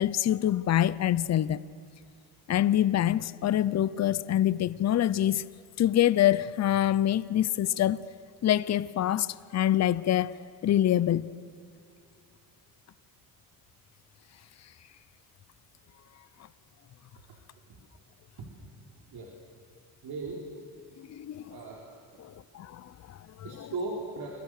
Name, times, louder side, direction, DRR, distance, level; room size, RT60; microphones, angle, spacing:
voice 1, 0.0-1.6 2.5-5.4 5.8-8.0 8.4-11.3 21.1-21.6 22.2-23.7, left 12 dB, 45° left, 0.7 m, -26 dB
voice 2, 20.0-20.4 21.5-21.8 23.4-24.3, right 3 dB, 70° right, 4.4 m, -36 dB
29.5 x 24.0 x 6.7 m
cardioid pair, 125°, 39 cm